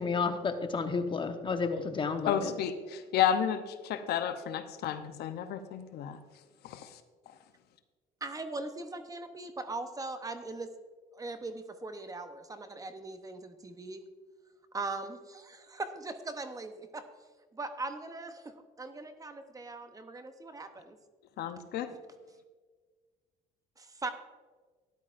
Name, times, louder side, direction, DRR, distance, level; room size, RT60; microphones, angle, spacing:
voice 1, 0.0-2.5, left 4 dB, 30° left, 7 dB, 0.9 m, -31 dB
voice 2, 2.3-6.2 6.6-6.9 21.4-21.9, left 9 dB, 70° left, 9 dB, 0.7 m, -31 dB
voice 3, 8.2-10.7 11.1-14.0 14.7-17.0 17.5-21.0 23.8-24.1, right 3 dB, 20° right, 8 dB, 0.8 m, -40 dB
13.0 x 10.5 x 2.5 m, 1.4 s
cardioid pair, 110°, 17 cm